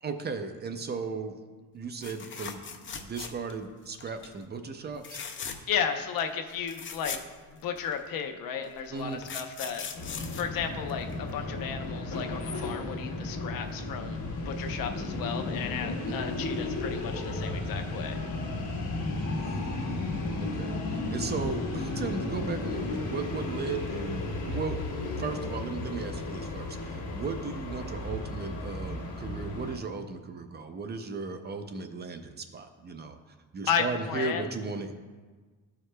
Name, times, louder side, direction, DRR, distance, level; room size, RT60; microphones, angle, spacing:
voice 1, 0.0-1.3 1.7-5.2 8.9-9.2 16.0-16.3 19.3-19.8 20.4-24.8 25.2-33.2 33.5-34.9, right 4 dB, 30° right, 7 dB, 0.4 m, -36 dB
sound 1, 2.0-3.6 4.0-4.3 5.0-5.8 6.2-6.3 6.5-8.0 8.8-11.3 13.2-13.4 13.7-13.8, left 6 dB, 35° left, 0.6 m, -40 dB
voice 2, 5.7-7.2 7.6-9.8 10.4-14.2 14.5-18.2 33.7-34.5, left 7 dB, 75° left, 6 dB, 0.7 m, -33 dB
sound 2, 9.9-29.8, left 2 dB, 60° left, 1.3 m, -34 dB
13.0 x 4.8 x 2.2 m, 1.4 s
cardioid pair, 130°, 34 cm